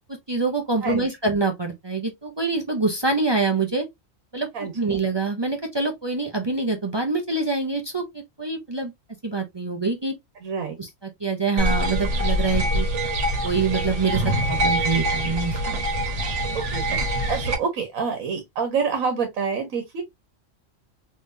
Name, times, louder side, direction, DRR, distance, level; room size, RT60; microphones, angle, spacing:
voice 1, 0.3-3.9 4.3-4.5 4.7-8.0 8.4-8.9 9.2-10.1 10.8-10.9 11.2-12.9 13.4-14.2 14.5-15.8, right 3 dB, 35° right, 0.4 m, -25 dB
voice 2, 4.5-5.0 10.4-10.8 16.5-20.0, right 5 dB, 85° right, 1.3 m, -27 dB
sound 1, 11.6-17.6, right 1 dB, 60° right, 1.4 m, -24 dB
3.7 x 3.2 x 2.6 m
omnidirectional pair, 1.4 m